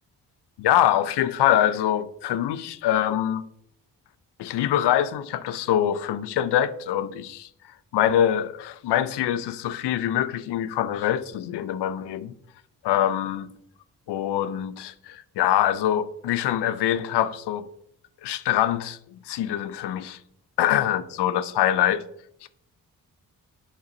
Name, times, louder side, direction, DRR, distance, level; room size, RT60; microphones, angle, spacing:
voice 1, 0.6-3.4 4.4-7.5 7.9-12.3 12.8-13.5 14.1-17.7 18.2-20.2 20.6-22.0 22.4-22.5, left 11 dB, 75° left, 0.6 m, -24 dB
8.2 x 4.0 x 4.0 m
supercardioid pair, 45°, 41 cm